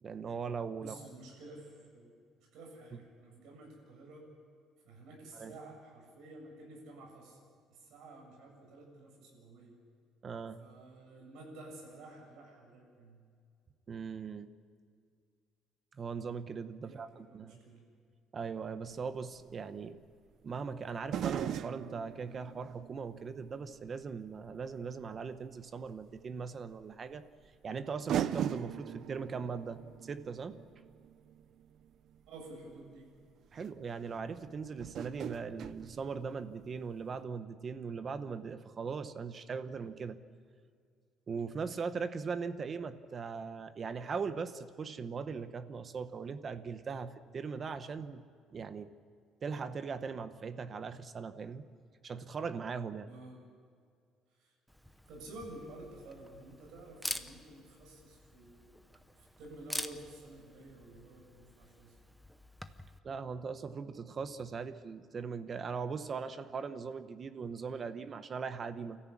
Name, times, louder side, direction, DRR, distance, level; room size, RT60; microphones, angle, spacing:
voice 1, 0.0-1.0 5.3-5.5 10.2-10.6 13.9-14.5 15.9-17.6 18.3-20.0 20.4-27.2 27.6-30.6 33.5-40.2 41.3-48.2 48.5-48.9 49.4-51.7 52.0-53.1 63.0-69.0, right 5 dB, 25° right, 11 dB, 0.9 m, -40 dB
voice 2, 0.8-2.2 2.5-4.3 4.8-7.4 7.7-9.8 10.6-13.2 16.8-17.9 32.3-33.1 53.0-53.4 54.4-54.5 55.1-58.7 59.4-62.0, right 2 dB, 70° right, 0 dB, 7.7 m, -51 dB
sound 1, 18.9-19.0 21.1-24.0 24.5-24.6 26.1-26.2 27.4-27.5 28.1-32.2 33.1-33.2 33.6-33.7 34.8-36.7 37.0-37.1, right 10 dB, 50° right, 0.6 m, -39 dB
Camera, 54.7-63.0, equal, ahead, 0.8 m, -46 dB
29.0 x 14.5 x 8.6 m, 2.2 s
cardioid pair, 170°, 0 cm